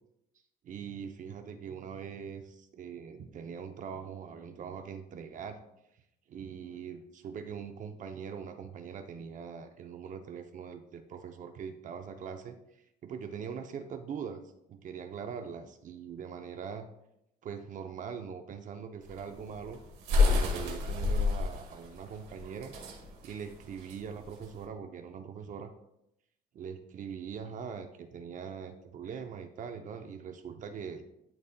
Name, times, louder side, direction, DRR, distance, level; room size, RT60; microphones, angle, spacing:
voice 1, 0.6-5.6 6.3-14.4 14.7-16.9 17.4-19.8 20.2-22.7 23.2-25.7 26.5-31.0, right 7 dB, 50° right, 6 dB, 0.6 m, -42 dB
sound 1, 19.0-24.6, left 4 dB, 80° right, 1.8 m, -29 dB
12.0 x 4.1 x 2.2 m, 0.82 s
cardioid pair, 110°, 17 cm